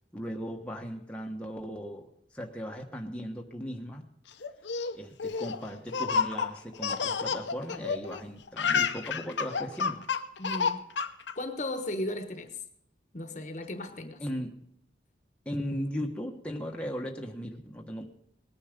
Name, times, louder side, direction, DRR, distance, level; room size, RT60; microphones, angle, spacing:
voice 1, 0.1-4.1 4.9-10.0 14.2-14.6 15.4-18.0, equal, 5° left, 0 dB, 1.3 m, -37 dB
Laughter, 4.4-8.2 8.5-11.3, left 5 dB, 85° left, 0.8 m, -30 dB
voice 2, 10.4-10.9 11.4-12.5 13.1-14.2, left 1 dB, 40° left, 8 dB, 1.2 m, -35 dB
19.5 x 9.6 x 5.1 m, 0.70 s
head